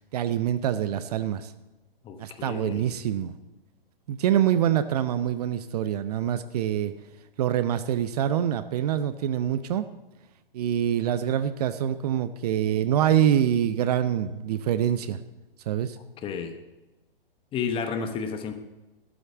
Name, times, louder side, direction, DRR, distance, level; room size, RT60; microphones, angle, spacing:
voice 1, 0.1-1.5 2.2-3.3 4.1-6.9 7.4-9.9 10.5-15.2 15.7-16.0, right 10 dB, 40° right, 13 dB, 0.7 m, -25 dB
voice 2, 2.0-2.9 16.2-16.6 17.5-18.5, left 6 dB, 20° left, 8 dB, 1.0 m, -31 dB
12.5 x 6.5 x 7.9 m, 1.0 s
figure-of-eight pair, 120°, 29 cm